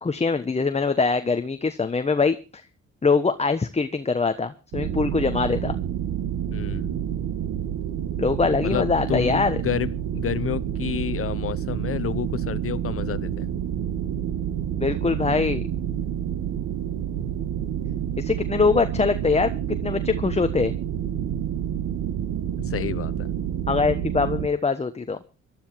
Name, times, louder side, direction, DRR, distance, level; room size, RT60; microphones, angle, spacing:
voice 1, 0.0-2.6 3.0-5.7 8.2-9.6 14.8-15.6 18.2-20.7 23.7-25.2, left 4 dB, 20° left, 1.1 m, -23 dB
sound 1, 4.7-24.5, right 9 dB, 80° right, 1.9 m, -28 dB
voice 2, 6.5-7.0 8.6-13.5 22.6-23.3, left 9 dB, 50° left, 1.0 m, -30 dB
18.5 x 12.5 x 4.6 m
cardioid pair, 90°, 30 cm